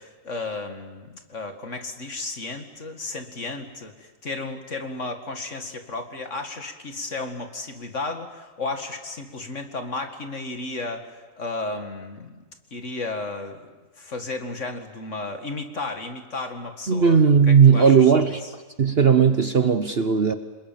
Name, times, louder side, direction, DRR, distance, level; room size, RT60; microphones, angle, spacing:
voice 1, 0.0-12.4 12.7-18.5, left 3 dB, 50° left, 6 dB, 2.4 m, -34 dB
voice 2, 16.9-18.4 18.8-20.3, right 6 dB, 45° right, 9 dB, 1.0 m, -17 dB
27.0 x 21.5 x 9.1 m, 1.3 s
omnidirectional pair, 1.7 m